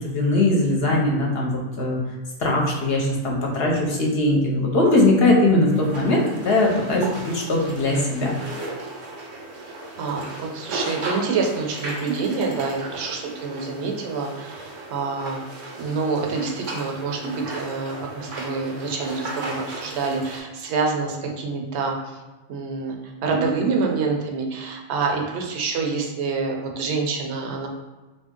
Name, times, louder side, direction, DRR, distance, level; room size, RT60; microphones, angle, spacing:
voice 1, 0.0-2.0 2.4-8.4, left 2 dB, 60° left, -1 dB, 0.8 m, -20 dB
sound 1, 5.7-20.4, right 2 dB, 90° right, 1.2 m, -35 dB
voice 2, 10.0-15.4 15.8-22.0 22.5-27.7, right 4 dB, 70° right, 1 dB, 0.8 m, -27 dB
2.8 x 2.6 x 3.6 m, 1.2 s
omnidirectional pair, 1.2 m